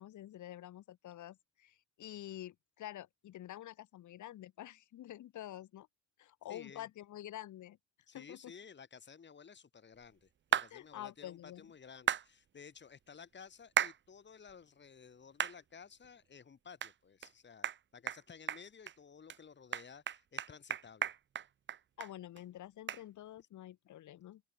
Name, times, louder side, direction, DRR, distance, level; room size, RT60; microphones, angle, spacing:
voice 1, 0.0-5.9 6.2-7.8 8.1-8.5 10.7-11.7 22.0-24.4, left 13 dB, 75° left, 2.5 m, -48 dB
voice 2, 6.5-6.9 8.1-21.2, left 6 dB, 35° left, 2.3 m, -55 dB
sound 1, 10.5-10.7 12.1-12.3 13.8-14.0 14.5-14.6 15.4-15.6 16.0-16.1 16.8-16.9 17.2-17.3 17.6-17.8 18.1-18.2 18.5-18.9 19.3-19.4 19.7-22.1 22.4-22.5 22.9-23.0, right 9 dB, 40° right, 0.6 m, -34 dB
open air
cardioid pair, 90°, 30 cm